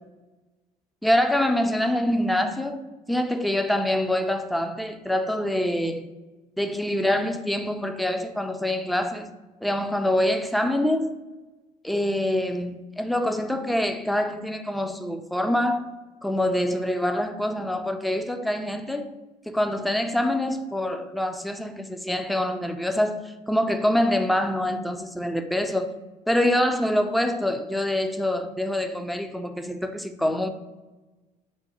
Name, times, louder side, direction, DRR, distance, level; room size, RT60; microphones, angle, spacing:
voice 1, 1.0-6.1 6.6-9.3 9.6-11.2 11.8-15.9 16.2-19.1 19.5-25.9 26.3-30.5, left 1 dB, ahead, 0.3 m, -25 dB
4.7 x 2.1 x 4.1 m
hypercardioid pair, 65°, 21 cm